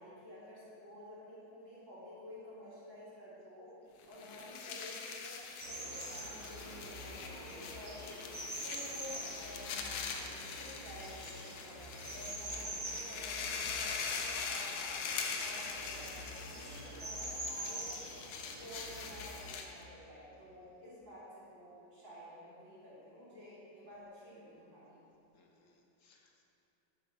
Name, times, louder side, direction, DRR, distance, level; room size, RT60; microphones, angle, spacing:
voice 1, 0.0-3.7 4.1-8.2 8.6-15.0 15.4-18.1 18.4-25.0, left 1 dB, 80° right, -13 dB, 3.3 m, -51 dB
sound 1, 4.0-19.8, left 5 dB, 90° left, 1.5 m, -42 dB
sound 2, 5.6-19.5, right 1 dB, 25° right, 0.9 m, -45 dB
voice 2, 12.4-12.8 20.4-20.8 25.3-26.4, left 4 dB, 55° left, 1 dB, 0.9 m, -68 dB
7.6 x 6.7 x 5.7 m, 2.7 s
omnidirectional pair, 2.1 m